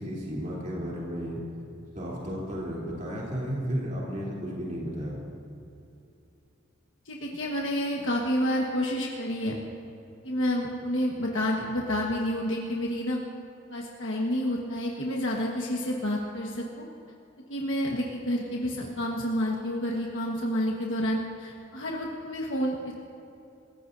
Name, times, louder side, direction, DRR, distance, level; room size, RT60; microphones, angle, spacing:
voice 1, 0.0-1.4 1.9-5.2, equal, 40° right, -5 dB, 3.3 m, -33 dB
voice 2, 7.0-9.5 10.2-13.2 13.7-16.8 17.5-22.9, equal, 70° left, -2 dB, 1.4 m, -29 dB
27.0 x 15.5 x 2.7 m, 2.7 s
head